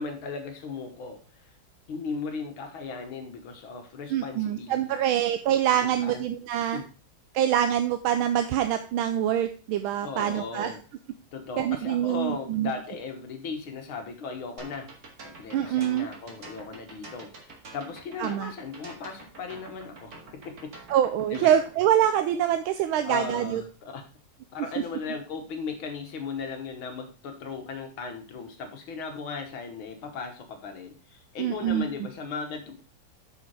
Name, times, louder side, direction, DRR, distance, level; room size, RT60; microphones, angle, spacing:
voice 1, 0.0-1.5 1.9-5.2 5.8-6.2 6.7-6.9 10.0-10.8 11.3-14.9 15.2-20.7 21.3-21.5 23.0-24.0 24.5-32.8, left 4 dB, 70° left, 5 dB, 2.1 m, -37 dB
voice 2, 4.1-6.8 7.3-10.7 11.6-12.7 15.5-16.1 18.2-18.5 20.9-23.6 31.4-31.8, right 10 dB, 75° right, 8 dB, 1.4 m, -25 dB
sound 1, 14.6-21.9, right 3 dB, 45° right, 2.2 m, -46 dB
6.9 x 6.3 x 4.8 m, 0.37 s
omnidirectional pair, 2.4 m